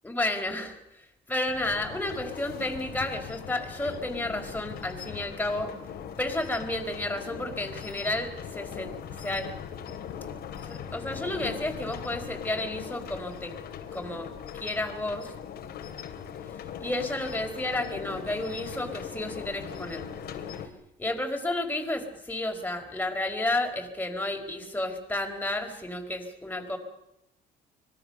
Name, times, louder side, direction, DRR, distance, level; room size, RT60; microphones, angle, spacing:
voice 1, 0.0-5.7 6.2-9.5 10.6-13.5 13.9-15.3 16.8-20.1 21.0-26.8, left 1 dB, 10° left, 4 dB, 4.7 m, -32 dB
sound 1, 1.4-20.7, left 8 dB, 70° left, 3.0 m, -40 dB
25.0 x 21.5 x 6.7 m, 0.82 s
cardioid pair, 110°, 17 cm